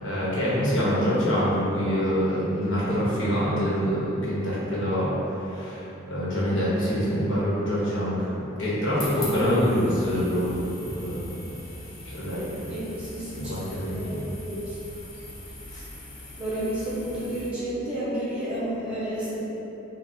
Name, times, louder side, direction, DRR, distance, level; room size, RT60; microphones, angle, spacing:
voice 1, 0.0-5.1 5.4-8.3 8.6-10.5 10.8-11.3 12.1-12.5 13.3-14.2 15.7-15.8, equal, 65° left, -8 dB, 1.1 m, -25 dB
sound 1, 8.9-17.5, left 1 dB, 45° left, 0.7 m, -42 dB
voice 2, 12.7-13.5 13.9-14.2 14.4-14.8 16.4-19.4, right 1 dB, 5° right, -10 dB, 0.9 m, -31 dB
5.4 x 2.2 x 2.8 m, 3.0 s
head